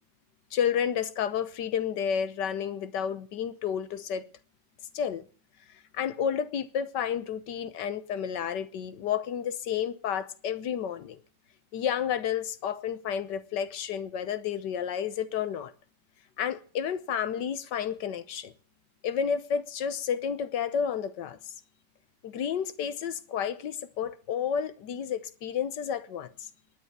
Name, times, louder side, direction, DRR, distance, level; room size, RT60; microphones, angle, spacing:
voice 1, 0.5-4.2 4.9-5.3 5.9-11.2 11.7-15.7 16.4-18.5 19.0-21.5 22.2-26.5, left 8 dB, 65° left, 1.5 m, -31 dB
21.0 x 9.6 x 6.0 m
omnidirectional pair, 2.1 m